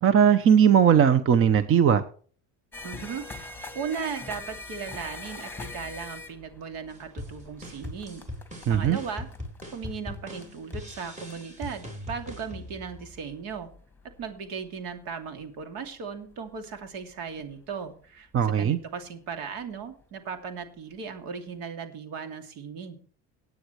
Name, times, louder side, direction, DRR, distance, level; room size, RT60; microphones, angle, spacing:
voice 1, 0.0-2.0 8.7-9.0 18.3-18.8, right 8 dB, 35° right, 13 dB, 0.9 m, -19 dB
sound 1, 2.7-18.1 18.8-19.0 19.3-20.0 20.6-20.7 21.2-21.3, left 3 dB, 5° left, 1.8 m, -44 dB
voice 2, 2.8-8.2 8.7-9.3 9.7-13.7 14.2-23.0, right 6 dB, 75° right, 6 dB, 2.7 m, -37 dB
sound 2, 6.9-13.4, left 1 dB, 20° right, 4.0 m, -40 dB
18.5 x 9.3 x 3.2 m, 0.44 s
cardioid pair, 115°, 35 cm